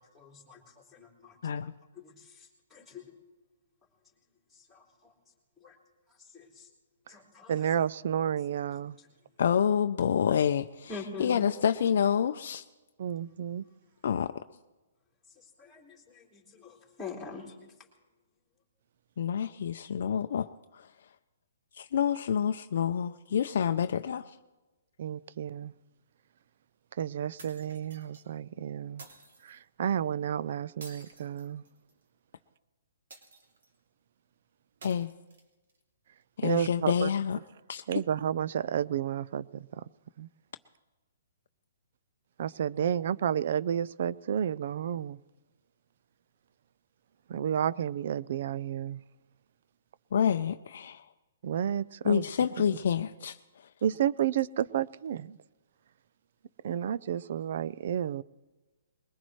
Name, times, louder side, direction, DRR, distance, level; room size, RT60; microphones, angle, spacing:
voice 1, 0.0-1.4 1.9-3.2 4.0-5.8 6.1-6.7 7.1-7.8 8.7-9.4 10.9-11.5 13.3-13.4 13.6-14.0 15.2-18.0 18.5-18.6, left 4 dB, 5° left, -5 dB, 3.2 m, -46 dB
voice 2, 7.5-9.0 13.0-13.6 25.0-25.7 27.0-29.1 29.4-31.6 36.4-37.1 37.9-39.8 40.2-40.3 42.4-45.2 47.3-49.0 51.4-52.2 53.8-55.4 56.6-58.2, right 9 dB, 55° right, 19 dB, 0.4 m, -31 dB
voice 3, 9.4-10.9 11.2-12.6 14.0-14.3 19.2-20.9 21.8-24.3 34.8-35.1 36.4-37.4 37.7-37.8 50.1-51.0 52.0-53.7, left 8 dB, 65° left, 8 dB, 0.5 m, -28 dB
sound 1, 27.4-28.2 29.0-29.6 30.8-32.0 33.1-33.8 34.8-35.8, right 3 dB, 75° right, 2.8 m, -52 dB
21.5 x 19.5 x 3.2 m, 1.2 s
hypercardioid pair, 155°, 0 cm